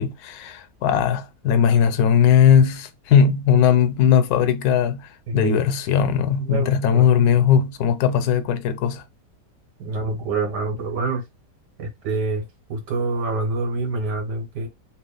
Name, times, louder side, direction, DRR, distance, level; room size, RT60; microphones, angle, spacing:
voice 1, 0.0-9.0, left 8 dB, 75° left, 1.0 m, -18 dB
voice 2, 5.3-5.6 6.4-7.1 9.8-11.2 11.8-14.7, right 3 dB, 90° right, 2.0 m, -26 dB
3.4 x 2.8 x 3.4 m
omnidirectional pair, 1.8 m